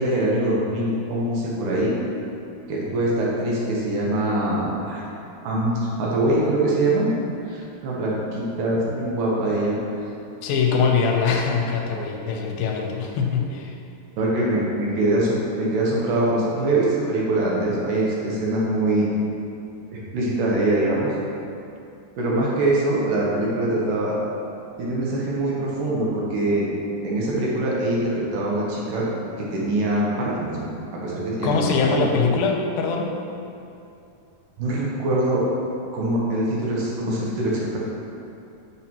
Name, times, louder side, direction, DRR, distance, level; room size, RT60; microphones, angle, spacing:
voice 1, 0.0-1.9 2.7-5.0 5.4-7.1 7.5-9.8 14.2-19.1 19.9-21.1 22.2-24.2 24.8-26.7 27.0-29.1 29.4-31.7 32.0-32.1 34.6-35.5 35.9-37.8, right 1 dB, 70° right, -4 dB, 2.3 m, -23 dB
voice 2, 10.4-13.8 31.4-33.2, left 5 dB, 85° left, 1 dB, 2.5 m, -22 dB
6.8 x 6.4 x 2.9 m, 2.7 s
omnidirectional pair, 4.1 m